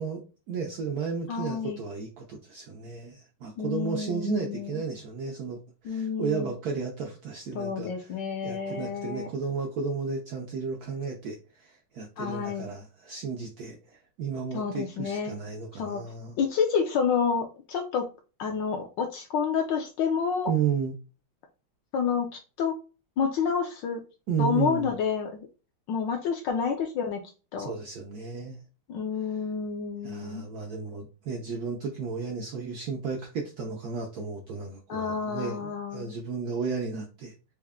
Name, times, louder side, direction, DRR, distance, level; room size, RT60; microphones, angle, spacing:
voice 1, 0.0-8.2 8.4-16.4 20.5-20.9 24.3-24.9 27.6-28.6 30.0-37.3, right 5 dB, 80° right, 1 dB, 0.8 m, -33 dB
voice 2, 1.3-1.9 3.6-4.8 5.8-6.5 7.5-9.3 12.2-12.7 14.5-15.3 15.7-16.0 16.4-18.1 18.4-20.5 21.9-22.7 23.2-24.0 24.4-25.5 25.9-27.2 27.5-27.7 28.9-30.4 34.9-36.2, left 6 dB, 70° left, 3 dB, 1.1 m, -29 dB
4.4 x 2.1 x 3.5 m, 0.33 s
omnidirectional pair, 2.3 m